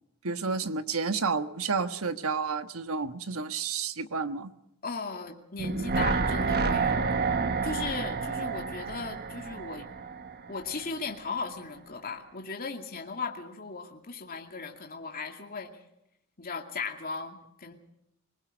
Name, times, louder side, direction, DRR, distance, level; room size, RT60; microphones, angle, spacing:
voice 1, 0.2-4.5, right 5 dB, 70° right, 9 dB, 1.4 m, -30 dB
voice 2, 4.8-7.1 7.6-9.9 10.5-15.8 16.4-17.7, left 4 dB, 45° left, 2 dB, 2.5 m, -37 dB
sound 1, 5.6-10.7 11.0-11.1, right 4 dB, 50° right, 1.3 m, -29 dB
25.5 x 21.5 x 5.2 m, 0.81 s
head